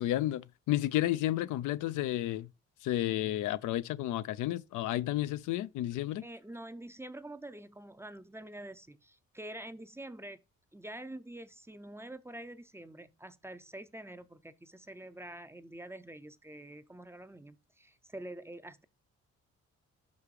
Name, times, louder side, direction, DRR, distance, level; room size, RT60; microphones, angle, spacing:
voice 1, 0.0-2.5 2.8-6.2, left 14 dB, 80° left, 0.5 m, -31 dB
voice 2, 6.2-10.4 10.7-18.8, right 1 dB, 10° right, 0.5 m, -46 dB
5.7 x 5.2 x 4.8 m
cardioid pair, 90°, 30 cm